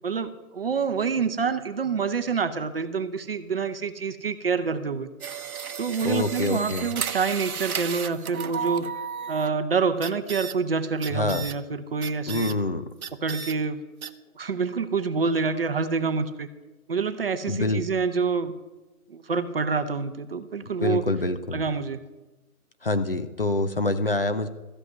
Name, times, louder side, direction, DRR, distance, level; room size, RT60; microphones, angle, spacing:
voice 1, 0.0-5.1 5.8-8.9 9.3-12.5 13.2-13.8 14.3-16.5 16.9-18.5 19.1-21.1 21.5-22.0, right 5 dB, 40° right, 10 dB, 0.7 m, -27 dB
sound 1, 5.2-9.5 10.0-10.6 11.0-11.6 12.0-12.6 13.0-13.5 14.0-14.1, right 7 dB, 70° right, 0.8 m, -33 dB
voice 2, 6.0-6.9 11.1-11.4 12.3-12.8 17.5-17.9 20.8-21.6 22.8-24.5, left 2 dB, 40° left, 10 dB, 0.5 m, -26 dB
13.5 x 5.6 x 9.5 m, 1.1 s
hypercardioid pair, 165°, 44 cm